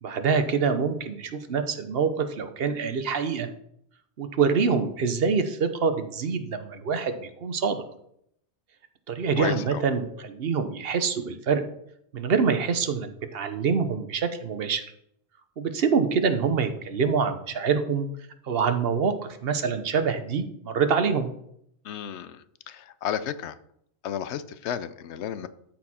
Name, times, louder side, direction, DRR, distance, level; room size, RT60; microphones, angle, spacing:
voice 1, 0.0-3.5 4.2-7.8 9.1-11.6 12.1-14.8 15.6-18.1 18.4-19.1 19.4-21.3, right 5 dB, 60° right, 9 dB, 1.0 m, -25 dB
voice 2, 9.4-9.8 21.8-23.6 24.0-25.5, left 9 dB, 80° left, 14 dB, 0.9 m, -33 dB
13.0 x 4.5 x 4.2 m, 0.72 s
omnidirectional pair, 1.2 m